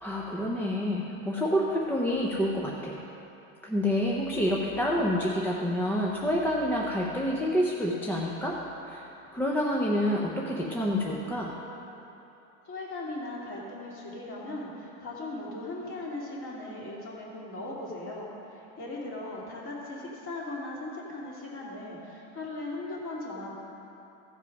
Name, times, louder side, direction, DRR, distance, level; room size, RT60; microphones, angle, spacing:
voice 1, 0.0-3.0 3.6-8.6 8.9-9.0 9.3-11.5, equal, 5° left, -3 dB, 0.6 m, -28 dB
voice 2, 12.6-23.5, left 2 dB, 35° left, -5 dB, 2.7 m, -38 dB
15.5 x 5.3 x 5.3 m, 3.0 s
supercardioid pair, 140°, 37 cm